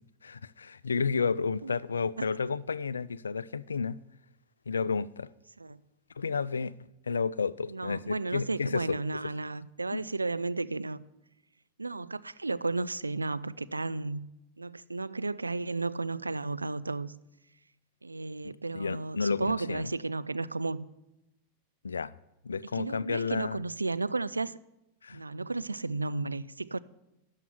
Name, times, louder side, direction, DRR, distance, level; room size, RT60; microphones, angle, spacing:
voice 1, 0.2-4.0 4.7-5.3 6.2-6.7 7.1-9.0 9.9-10.0 18.4-19.9 21.8-22.1 22.4-23.6 25.0-25.2, left 5 dB, 75° left, 0.4 m, -31 dB
voice 2, 7.7-11.0 11.8-14.3 14.6-17.1 18.0-20.9 22.7-24.6 25.1-26.8, right 3 dB, 80° right, 0.4 m, -33 dB
13.0 x 5.8 x 9.5 m
figure-of-eight pair, 90°, 0 cm